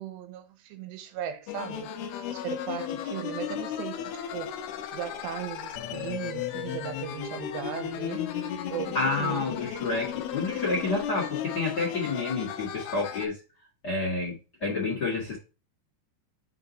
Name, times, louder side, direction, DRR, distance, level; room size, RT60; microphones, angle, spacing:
voice 1, 0.0-1.9 2.3-8.3 8.7-9.6, right 10 dB, 80° right, 2.8 m, -38 dB
sound 1, 1.5-13.3, left 9 dB, 80° left, 2.4 m, -35 dB
voice 2, 8.9-13.4 13.8-15.4, left 3 dB, 50° left, 1.2 m, -29 dB
6.1 x 4.0 x 5.0 m
omnidirectional pair, 5.1 m